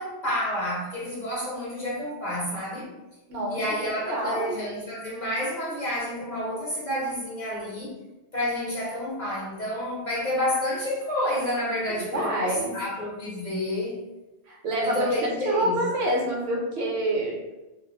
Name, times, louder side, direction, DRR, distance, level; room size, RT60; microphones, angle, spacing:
voice 1, 0.0-2.9 3.5-7.9 8.3-14.0 14.8-15.9, left 1 dB, 50° left, -6 dB, 0.7 m, -29 dB
voice 2, 3.3-3.6 4.0-4.6 12.1-12.7 14.5-15.0 15.4-17.4, right 1 dB, 70° right, -2 dB, 0.9 m, -27 dB
2.3 x 2.0 x 3.0 m, 1.0 s
omnidirectional pair, 1.2 m